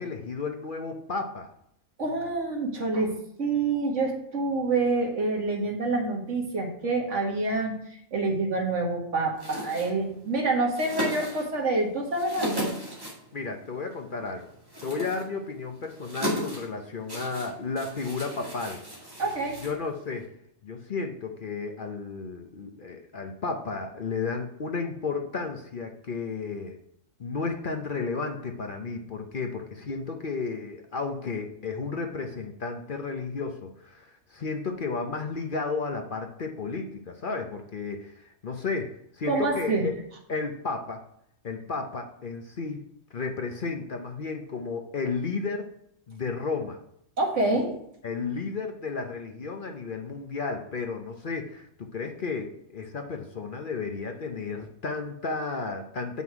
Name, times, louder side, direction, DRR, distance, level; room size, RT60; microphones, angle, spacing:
voice 1, 0.0-1.5 13.3-14.5 14.8-18.8 19.6-20.3 20.6-26.8 27.2-39.9 40.3-41.0 41.4-42.8 43.1-45.7 46.1-46.8 48.0-56.2, left 4 dB, 45° left, 4 dB, 0.8 m, -33 dB
voice 2, 2.0-7.8 8.1-12.7 19.2-19.6 39.3-39.8 47.2-47.7, right 3 dB, 65° right, 0 dB, 2.0 m, -27 dB
sound 1, 9.3-20.3, equal, 15° right, 2.1 m, -37 dB
8.0 x 5.6 x 4.7 m, 0.71 s
omnidirectional pair, 1.3 m